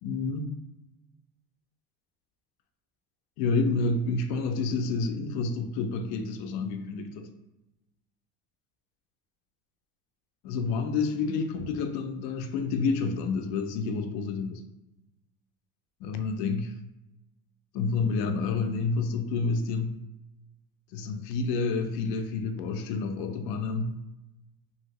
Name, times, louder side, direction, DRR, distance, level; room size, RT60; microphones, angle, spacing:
voice 1, 0.0-0.6 3.4-7.3 10.4-14.6 16.0-16.8 17.7-20.0 20.9-24.0, left 4 dB, 65° left, 6 dB, 0.5 m, -29 dB
2.8 x 2.7 x 2.8 m, 0.96 s
cardioid pair, 145°, 42 cm